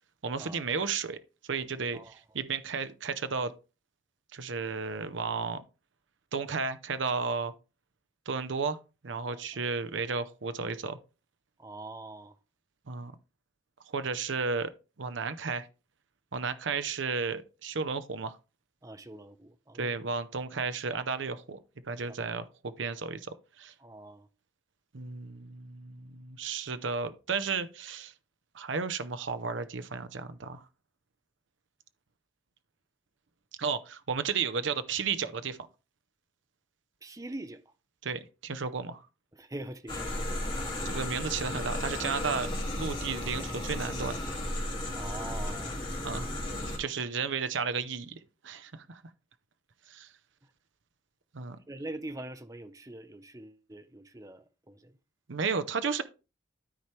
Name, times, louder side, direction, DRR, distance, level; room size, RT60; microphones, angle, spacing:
voice 1, 0.2-1.2 1.5-3.5 4.3-5.6 6.3-7.5 8.3-8.8 9.0-11.0 12.9-13.1 13.9-14.7 15.0-15.7 16.3-18.4 19.8-21.6 21.9-23.7 24.9-28.1 28.5-30.6 33.6-35.6 38.0-39.0 40.8-44.2 46.0-46.3 46.8-49.0 49.9-50.1 51.3-51.6 55.3-56.0, right 5 dB, 70° right, 0.7 m, -33 dB
voice 2, 11.6-12.3 18.8-20.0 23.8-24.3 37.0-37.7 39.3-40.3 44.9-45.8 51.7-54.9, right 2 dB, 15° right, 0.6 m, -43 dB
sound 1, 39.9-46.8, left 1 dB, 25° left, 2.1 m, -34 dB
13.0 x 4.4 x 3.2 m
head